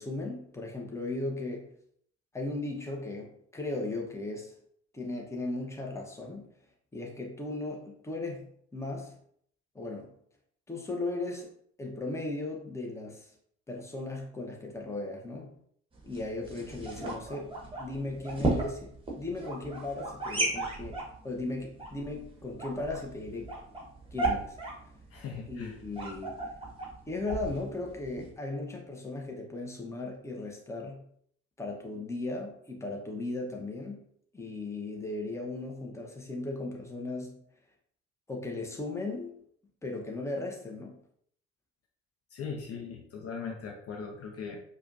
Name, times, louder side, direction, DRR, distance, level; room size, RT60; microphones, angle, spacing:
voice 1, 0.0-1.7 2.3-4.5 4.9-6.5 6.9-9.1 9.7-10.1 10.7-11.5 11.8-13.3 13.7-15.5 16.0-23.6 24.1-24.6 25.4-26.4 27.1-31.1 31.6-34.0 34.3-37.4 38.3-39.4 39.8-41.0, left 2 dB, 10° left, 0 dB, 0.9 m, -37 dB
sound 1, 15.9-28.3, right 2 dB, 15° right, 1.2 m, -36 dB
voice 2, 25.1-25.8 42.3-44.6, left 5 dB, 40° left, 1 dB, 0.7 m, -39 dB
4.8 x 2.4 x 2.6 m, 0.65 s
figure-of-eight pair, 50°, 35 cm